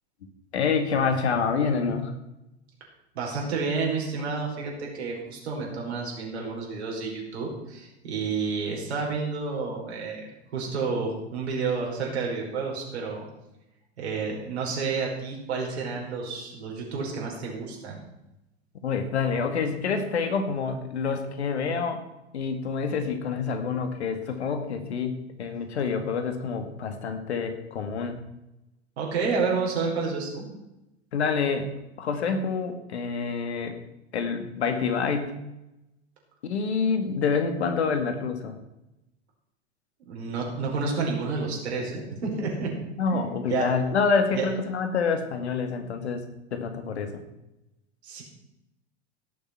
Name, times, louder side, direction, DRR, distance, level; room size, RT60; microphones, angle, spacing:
voice 1, 0.5-2.1 18.8-22.0 22.3-28.2 29.3-29.5 31.1-31.7 32.0-33.8 34.1-35.4 36.4-38.6 43.0-46.2 46.5-47.2, left 5 dB, 75° left, 7 dB, 2.1 m, -27 dB
voice 2, 3.1-13.3 14.0-18.0 29.0-30.4 40.1-42.7 43.1-43.7 44.3-44.5 48.0-48.2, right 4 dB, 70° right, -1 dB, 5.1 m, -30 dB
17.0 x 7.2 x 6.0 m, 0.93 s
figure-of-eight pair, 85°, 34 cm